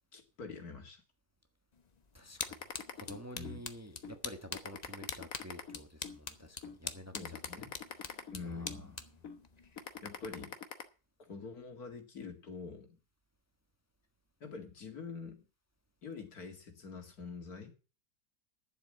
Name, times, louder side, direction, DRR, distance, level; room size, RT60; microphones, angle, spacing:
voice 1, 0.1-1.0 3.3-3.6 7.1-7.8 8.3-8.9 10.0-10.6 11.2-12.9 14.4-15.5 16.0-17.7, left 4 dB, 85° left, 2.7 m, -45 dB
sound 1, 1.7-10.4, left 5 dB, 35° left, 0.8 m, -46 dB
voice 2, 2.1-2.5 2.9-7.6 7.9-8.9, equal, 10° right, 1.2 m, -50 dB
sound 2, 2.4-3.6 4.0-4.2 4.5-6.2 6.6-6.8 7.1-8.8 9.2-9.4 9.8-10.8, left 7 dB, 65° left, 1.6 m, -44 dB
11.0 x 7.4 x 7.6 m
omnidirectional pair, 1.6 m